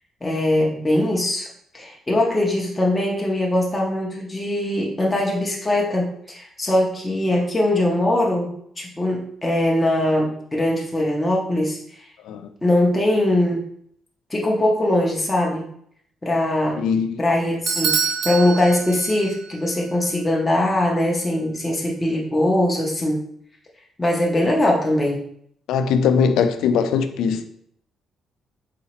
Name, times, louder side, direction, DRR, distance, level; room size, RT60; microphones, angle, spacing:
voice 1, 0.2-1.5 1.7-12.1 12.6-13.6 14.3-15.6 16.2-16.8 17.2-23.2 24.0-25.2, left 1 dB, 10° left, 0.5 m, -21 dB
voice 2, 16.8-17.2 25.7-27.4, left 6 dB, 90° left, 0.3 m, -20 dB
Bell / Doorbell, 17.7-19.5, right 6 dB, 55° right, 0.4 m, -25 dB
4.0 x 2.8 x 2.9 m
cardioid pair, 155°, 0 cm